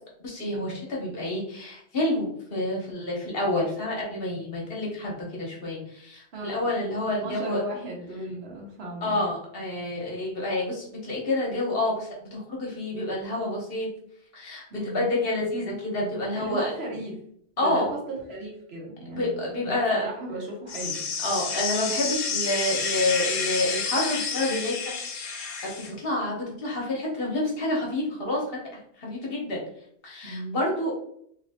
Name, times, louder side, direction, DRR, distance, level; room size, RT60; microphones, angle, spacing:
voice 1, 0.2-7.6 9.0-13.9 14.3-14.6 14.9-16.7 17.6-17.9 19.1-20.0 21.2-24.9 25.2-28.4 29.0-29.6 30.0-30.9, left 1 dB, 60° left, -3 dB, 1.3 m, -28 dB
voice 2, 6.3-9.3 14.7-15.1 16.3-17.1 17.6-21.0 30.2-30.6, right 1 dB, 75° right, -2 dB, 1.3 m, -36 dB
sound 1, 20.7-25.9, left 5 dB, 90° left, 0.9 m, -29 dB
3.3 x 2.5 x 3.5 m, 0.69 s
omnidirectional pair, 1.1 m